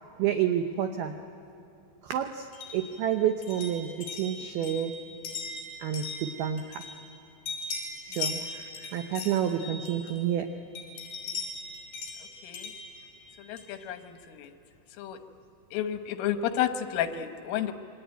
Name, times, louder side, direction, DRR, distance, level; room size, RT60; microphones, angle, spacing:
voice 1, 0.2-1.1 2.0-2.5 2.7-4.9 5.8-6.9 8.1-8.4 8.9-10.5, right 9 dB, 85° right, 6 dB, 2.1 m, -29 dB
sound 1, 2.5-7.2 7.5-10.4 10.8-13.8, left 3 dB, 45° left, 6.7 m, -39 dB
voice 2, 13.4-14.5 15.0-15.2 15.7-17.7, left 10 dB, 80° left, 8 dB, 3.7 m, -31 dB
27.5 x 24.0 x 9.1 m, 2.6 s
omnidirectional pair, 5.7 m